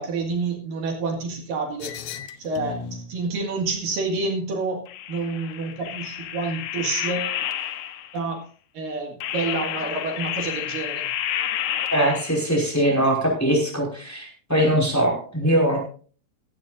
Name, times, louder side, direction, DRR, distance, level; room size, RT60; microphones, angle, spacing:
voice 1, 0.0-1.9 2.4-4.8 5.1-7.4 8.1-8.4 8.7-11.1, right 3 dB, 70° right, 1 dB, 3.5 m, -28 dB
sound 1, 1.8-3.1 4.9-8.2 9.2-12.6, left 10 dB, 70° left, 1.8 m, -30 dB
voice 2, 11.9-15.8, right 1 dB, 5° left, -2 dB, 4.9 m, -21 dB
16.5 x 14.0 x 2.6 m, 0.41 s
omnidirectional pair, 4.3 m